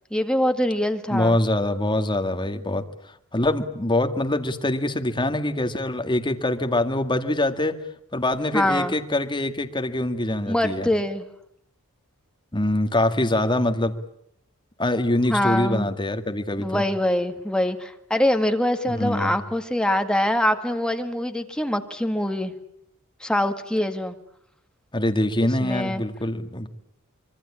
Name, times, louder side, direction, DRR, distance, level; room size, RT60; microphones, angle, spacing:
voice 1, 0.1-1.4 8.5-8.9 10.5-11.2 15.3-15.9 16.6-22.5 23.2-24.1 25.4-26.0, left 1 dB, 5° left, 6 dB, 2.0 m, -24 dB
voice 2, 1.1-2.9 3.3-7.8 8.1-10.9 12.5-13.9 14.8-16.8 18.9-19.3 24.9-26.7, left 1 dB, 20° left, 7 dB, 2.1 m, -24 dB
25.5 x 24.0 x 8.7 m, 0.71 s
head